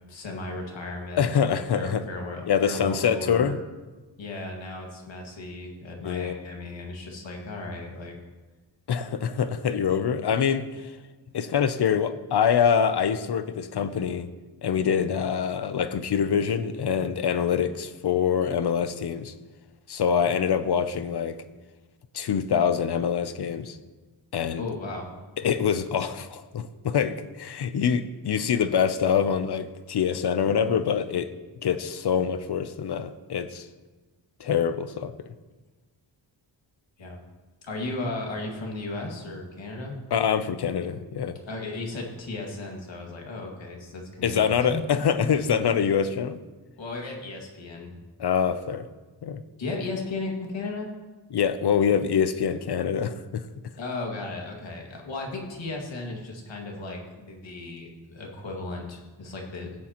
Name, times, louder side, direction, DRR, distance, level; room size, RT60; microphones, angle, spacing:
voice 1, 0.1-3.6 4.2-8.2 24.6-25.1 37.0-37.2 37.6-39.9 41.4-45.0 46.8-47.9 49.6-50.9 53.8-59.8, left 2 dB, 75° left, 0 dB, 2.1 m, -35 dB
voice 2, 1.2-2.0 2.5-3.6 6.0-6.4 8.9-10.7 11.3-14.3 14.6-19.3 19.9-21.4 22.1-23.8 24.3-24.6 25.4-31.3 31.6-33.7 34.4-35.1 40.1-41.3 44.2-46.4 48.2-48.8 49.2-49.4 51.3-53.4, left 7 dB, 60° left, 12 dB, 0.6 m, -25 dB
15.5 x 9.9 x 2.9 m, 1.3 s
wide cardioid pair, 130°, 45 cm